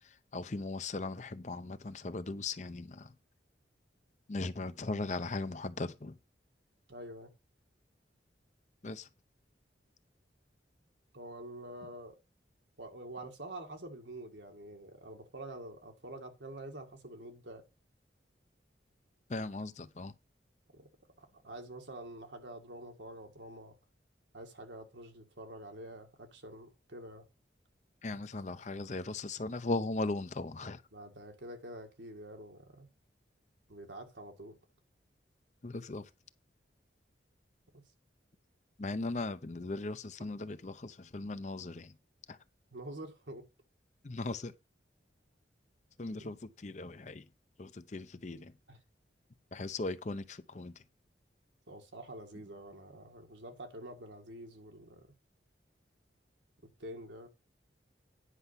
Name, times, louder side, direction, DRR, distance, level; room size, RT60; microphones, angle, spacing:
voice 1, 0.0-3.2 4.3-6.2 8.8-9.1 19.3-20.1 28.0-30.8 35.6-36.1 38.8-42.0 42.3-42.4 44.0-44.5 46.0-47.3 47.6-48.6 49.5-50.8, left 2 dB, 40° left, 0.6 m, -38 dB
voice 2, 6.9-7.3 11.1-12.2 12.8-17.6 20.7-20.9 21.2-23.7 24.3-27.3 30.9-32.9 33.7-34.6 42.7-43.4 46.2-46.3 48.7-48.8 51.7-55.1 56.6-57.3, right 1 dB, 80° right, 2.0 m, -47 dB
10.0 x 5.5 x 5.7 m
head